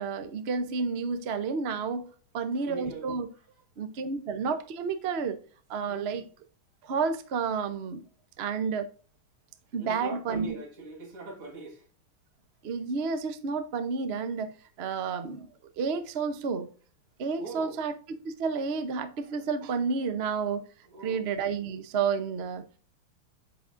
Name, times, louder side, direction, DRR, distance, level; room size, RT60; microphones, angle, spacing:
voice 1, 0.0-2.0 2.3-3.3 3.8-5.4 5.7-6.2 6.8-8.0 8.4-8.9 9.7-10.5 12.6-15.5 15.8-16.7 17.2-17.9 18.2-20.6 21.0-22.7, right 5 dB, 70° right, 0.6 m, -30 dB
voice 2, 2.6-3.6 5.9-6.3 9.8-11.9 17.4-17.9 20.8-21.3, right 3 dB, 85° right, 2.8 m, -42 dB
8.3 x 6.5 x 2.6 m
omnidirectional pair, 2.4 m